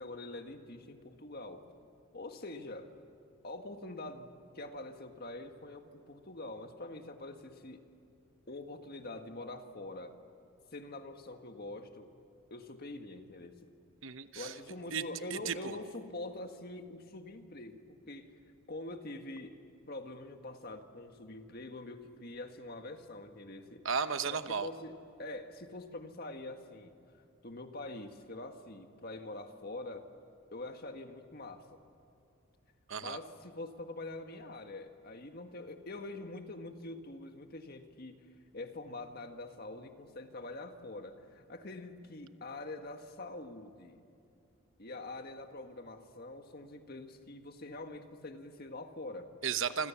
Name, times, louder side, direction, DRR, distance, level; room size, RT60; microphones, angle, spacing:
voice 1, 0.0-1.6 2.1-2.9 3.4-7.8 8.5-10.1 10.7-12.1 12.5-13.5 14.3-18.3 18.7-19.6 19.9-23.8 24.2-26.9 27.4-30.1 30.5-31.6 33.0-38.2 38.5-44.0 44.8-49.3, left 2 dB, 45° left, 6 dB, 1.7 m, -45 dB
voice 2, 14.0-14.5 14.9-15.0 15.3-15.8 23.8-24.7 32.9-33.2 49.4-49.9, right 6 dB, 65° right, 11 dB, 1.0 m, -34 dB
27.5 x 25.5 x 7.2 m, 2.6 s
head